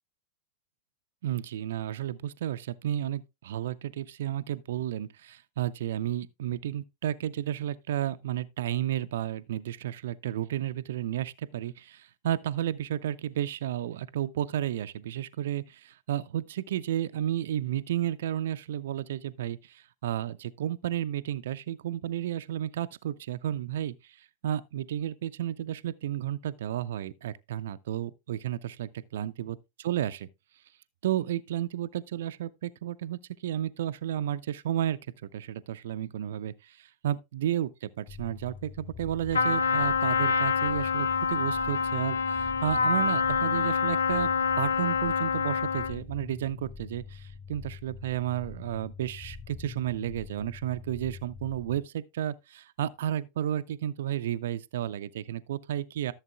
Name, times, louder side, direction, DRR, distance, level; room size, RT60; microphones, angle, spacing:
voice 1, 1.2-30.3 31.0-44.3 44.6-56.1, right 11 dB, 60° right, 0.4 m, -32 dB
sound 1, 38.1-51.8, left 5 dB, 10° left, 0.7 m, -45 dB
Trumpet, 39.3-46.0, left 5 dB, 70° left, 0.5 m, -26 dB
14.5 x 7.2 x 2.2 m
figure-of-eight pair, 90°, 0 cm